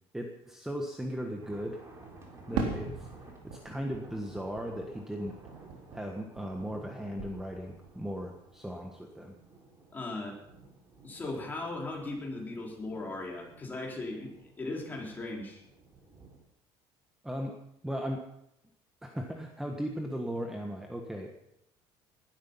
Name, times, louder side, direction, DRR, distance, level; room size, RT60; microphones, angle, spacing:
voice 1, 0.1-1.8 2.5-2.9 3.4-5.4 5.9-9.3 17.2-17.6 17.8-18.2 19.0-21.3, equal, 5° right, 3 dB, 1.3 m, -37 dB
sound 1, 1.4-16.4, right 3 dB, 25° right, 3.9 m, -54 dB
Fireworks, 2.6-6.9 7.2-8.0, right 5 dB, 80° right, 3.6 m, -39 dB
voice 2, 9.9-10.4 11.0-15.6, left 2 dB, 20° left, -1 dB, 4.5 m, -38 dB
19.5 x 12.0 x 5.6 m, 0.83 s
cardioid pair, 155°, 10 cm